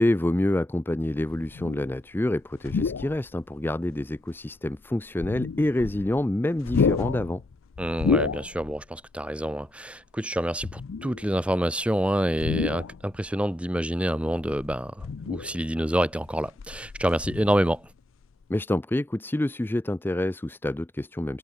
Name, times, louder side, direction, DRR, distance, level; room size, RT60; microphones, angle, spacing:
voice 1, 0.0-7.4 18.5-21.4, left 1 dB, 10° left, 0.4 m, -27 dB
sound 1, 1.3-1.9 2.6-3.3 3.9-4.0 5.1-6.3 6.6-8.8 9.1-9.3 10.5-11.3 12.3-13.3 14.4-15.7 16.2-17.9 18.2-18.4, left 5 dB, 85° left, 0.5 m, -30 dB
voice 2, 7.8-17.9, equal, 5° right, 1.4 m, -27 dB
head